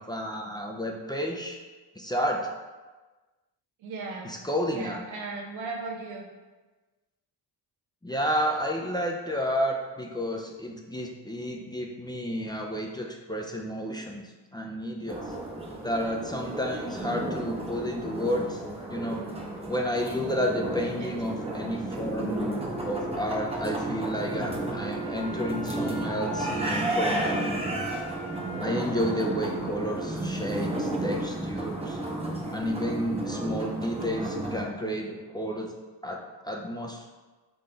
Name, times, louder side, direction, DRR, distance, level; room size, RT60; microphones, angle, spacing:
voice 1, 0.1-1.6 2.0-2.5 4.2-5.0 8.0-14.2 14.5-15.2 15.8-18.6 18.9-19.2 19.7-27.6 28.6-32.0 32.5-35.7 36.0-36.2 36.5-37.1, equal, 10° left, 0 dB, 0.4 m, -31 dB
voice 2, 3.8-4.3 4.7-6.3 20.9-21.2, right 3 dB, 90° right, 0 dB, 0.9 m, -37 dB
sound 1, 15.1-34.7, right 1 dB, 15° right, 0.8 m, -33 dB
Wind instrument woodwind instrument, 22.0-31.0, right 6 dB, 40° left, 1.3 m, -41 dB
3.8 x 3.2 x 3.9 m, 1.3 s
cardioid pair, 80°, 45 cm